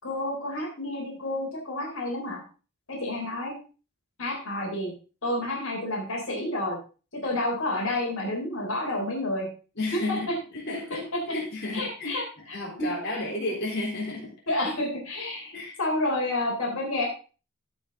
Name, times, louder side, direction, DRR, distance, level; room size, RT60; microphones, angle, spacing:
voice 1, 0.0-2.4 2.9-3.5 4.2-4.9 5.2-6.8 7.2-9.5 10.1-10.2 11.7-13.2 14.5-17.1, left 1 dB, 75° left, -1 dB, 3.9 m, -30 dB
voice 2, 9.8-10.3 10.5-12.2 12.5-14.3 15.5-15.8, left 2 dB, 50° left, -3 dB, 4.0 m, -32 dB
15.5 x 5.8 x 3.9 m, 0.35 s
head